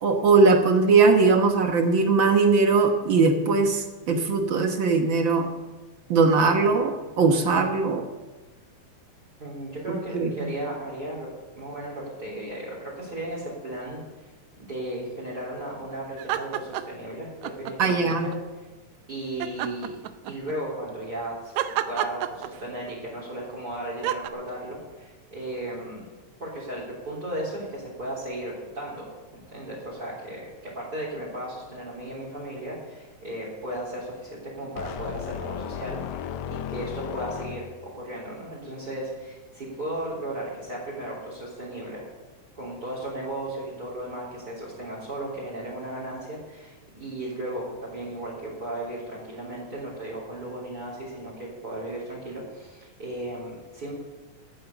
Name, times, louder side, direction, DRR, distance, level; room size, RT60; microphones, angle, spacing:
voice 1, 0.0-5.5 6.1-8.0 9.9-10.5 17.8-18.3, right 4 dB, 60° right, 5 dB, 1.4 m, -20 dB
voice 2, 9.4-11.3 11.6-14.0 14.6-18.3 18.6-18.7 19.1-20.0 20.3-21.6 21.9-26.0 26.4-29.1 29.3-42.1 42.5-53.9, right 1 dB, 30° right, -6 dB, 3.9 m, -35 dB
sound 1, 16.2-17.0 17.4-18.4 19.4-20.5 21.6-22.9 24.0-24.3, right 12 dB, 75° right, 1.9 m, -29 dB
sound 2, 34.8-38.0, left 9 dB, 75° left, 1.7 m, -35 dB
14.5 x 9.4 x 7.0 m, 1.2 s
omnidirectional pair, 3.4 m